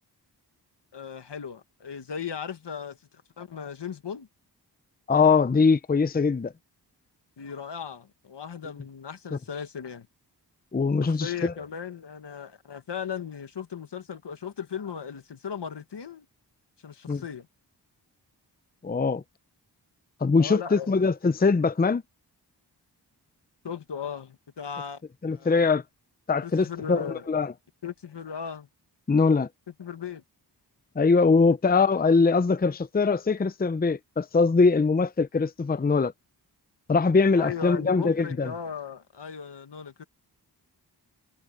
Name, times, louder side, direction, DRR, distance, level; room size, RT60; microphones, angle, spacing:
voice 1, 0.9-3.0 3.4-4.3 7.4-10.1 11.0-16.2 16.8-17.5 20.4-20.9 23.6-25.0 25.3-25.7 26.4-27.3 27.8-28.7 29.8-30.2 37.3-40.0, left 7 dB, 75° left, 1.7 m, -37 dB
voice 2, 5.1-6.5 9.3-9.4 10.7-11.5 17.1-17.2 18.8-19.2 20.2-22.0 25.2-25.8 26.3-27.5 29.1-29.5 31.0-36.1 36.9-38.5, left 4 dB, 20° left, 0.6 m, -22 dB
cardioid pair, 55°, 41 cm